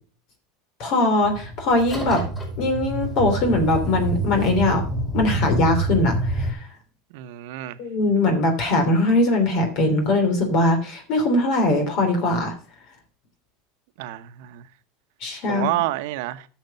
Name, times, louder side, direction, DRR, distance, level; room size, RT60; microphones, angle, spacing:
voice 1, 0.8-2.2 2.6-4.8 5.1-6.7 7.8-12.5 15.2-15.7, left 2 dB, 60° left, 3.0 m, -21 dB
sound 1, 1.2-6.5, right 1 dB, 25° left, 5.0 m, -27 dB
voice 2, 7.1-7.8 14.0-14.7 15.5-16.5, right 16 dB, 75° right, 0.9 m, -28 dB
11.5 x 6.6 x 5.3 m
supercardioid pair, 120°, 0 cm